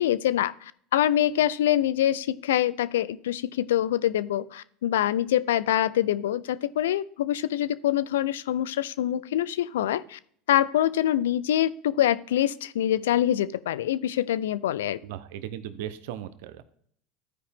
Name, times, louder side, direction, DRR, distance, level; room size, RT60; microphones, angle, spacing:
voice 1, 0.0-10.2 10.5-15.0, left 12 dB, 85° left, 17 dB, 0.4 m, -25 dB
voice 2, 15.0-16.6, right 11 dB, 75° right, 12 dB, 0.7 m, -37 dB
13.0 x 4.9 x 3.5 m, 0.63 s
hypercardioid pair, 90°, 0 cm